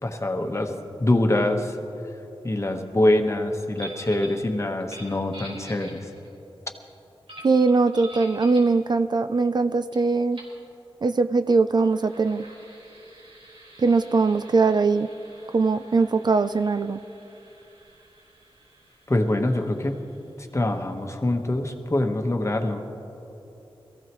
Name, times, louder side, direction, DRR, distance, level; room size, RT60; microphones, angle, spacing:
voice 1, 0.0-1.8 2.4-6.1 19.1-20.0 20.4-22.8, left 1 dB, 30° left, 4 dB, 1.2 m, -24 dB
sound 1, 3.8-4.4 4.8-6.3 7.3-8.7 9.9-10.0 10.3-10.6 11.6-20.9, right 1 dB, 80° right, 4.2 m, -46 dB
voice 2, 7.4-10.4 11.0-12.4 13.8-15.1 15.5-17.0, right 4 dB, 50° right, 11 dB, 0.4 m, -21 dB
22.5 x 15.0 x 3.1 m, 3.0 s
wide cardioid pair, 70°, 10 cm